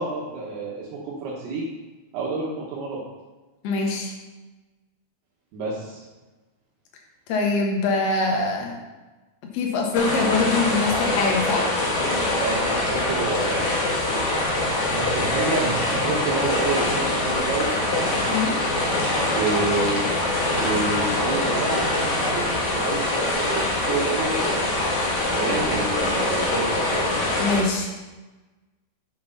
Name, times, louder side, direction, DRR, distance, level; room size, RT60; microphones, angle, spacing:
voice 1, 0.0-1.7 2.1-3.0 5.5-6.0 12.4-13.9 14.9-17.7 19.3-20.0 20.5-24.5 25.3-27.0, right 3 dB, 80° right, -5 dB, 3.1 m, -29 dB
voice 2, 3.6-4.1 7.3-8.8 9.5-11.7 18.3-18.6 25.5-25.6 27.4-27.9, left 3 dB, 80° left, 0 dB, 3.3 m, -23 dB
sound 1, 9.9-27.6, left 2 dB, 50° left, 1.9 m, -24 dB
7.6 x 6.1 x 5.5 m, 1.2 s
omnidirectional pair, 4.7 m